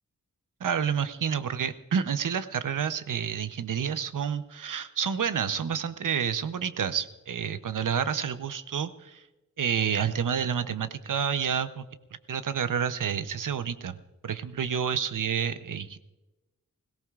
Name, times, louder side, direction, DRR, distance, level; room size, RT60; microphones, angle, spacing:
voice 1, 0.6-9.2 9.6-11.9 12.3-14.0 14.2-16.0, right 7 dB, 70° right, 12 dB, 0.8 m, -29 dB
21.0 x 17.5 x 2.4 m, 1.0 s
wide cardioid pair, 130°, 33 cm